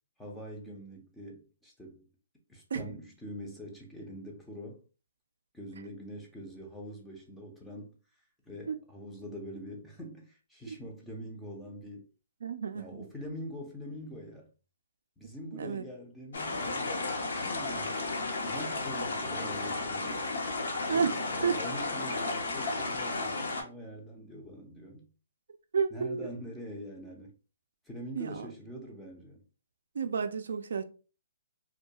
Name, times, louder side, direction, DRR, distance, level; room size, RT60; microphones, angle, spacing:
voice 1, 0.2-2.1 2.5-4.8 5.5-8.0 8.5-12.0 12.7-14.5 15.2-20.2 20.9-25.1 25.9-27.3 27.9-29.4, equal, 5° left, 0.5 m, -44 dB
voice 2, 12.4-13.1 15.5-15.9 20.9-21.6 25.7-26.3 28.1-28.5 29.9-30.8, right 6 dB, 70° right, 0.3 m, -31 dB
sound 1, 16.3-23.6, left 3 dB, 70° left, 0.7 m, -33 dB
2.3 x 2.2 x 2.7 m
hypercardioid pair, 160°, 0 cm